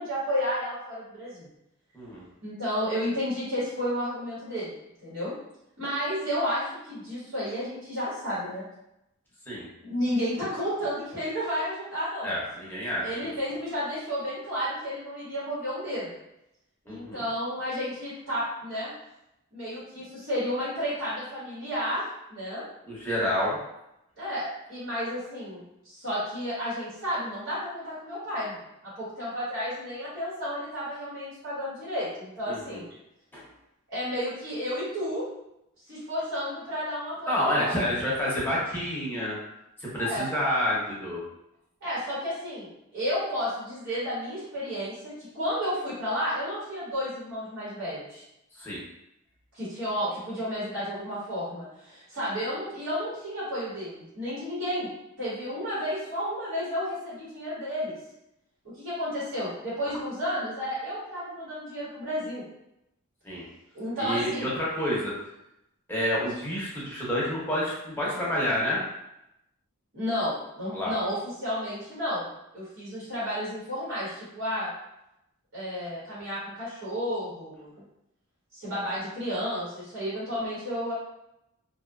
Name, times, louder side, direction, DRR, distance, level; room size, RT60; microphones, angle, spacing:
voice 1, 0.0-1.5 2.4-4.7 5.0-5.3 5.8-8.6 9.8-12.3 13.0-16.1 16.9-18.9 19.5-22.0 22.3-22.6 24.2-28.6 29.0-32.9 33.9-35.2 35.9-37.9 39.9-40.2 41.8-48.2 49.5-54.9 55.2-57.9 58.8-62.4 63.7-64.5 69.9-72.3 72.5-74.7 75.5-77.7 78.6-80.9, equal, 60° right, -10 dB, 1.2 m, -32 dB
voice 2, 12.2-13.3 16.9-17.2 22.9-23.6 32.5-32.8 33.3-33.4 37.3-39.4 39.8-41.2 48.6-48.8 63.2-63.4 64.0-65.1 65.9-68.8 70.7-71.0, left 1 dB, 10° left, -6 dB, 0.7 m, -29 dB
2.6 x 2.3 x 2.3 m, 0.86 s
head